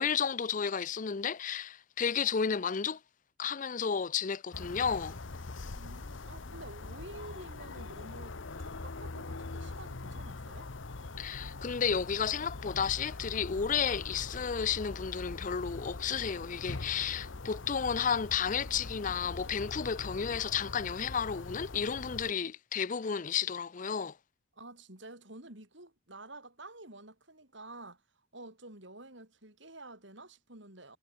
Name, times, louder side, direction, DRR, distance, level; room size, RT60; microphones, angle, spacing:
voice 1, 0.0-3.0 3.4-5.2 11.2-24.1, left 7 dB, 40° left, 0.5 m, -32 dB
sound 1, 4.5-22.3, left 3 dB, 65° left, 1.0 m, -42 dB
voice 2, 5.7-10.7 24.5-28.0 28.3-31.0, right 2 dB, 60° right, 6.5 m, -50 dB
head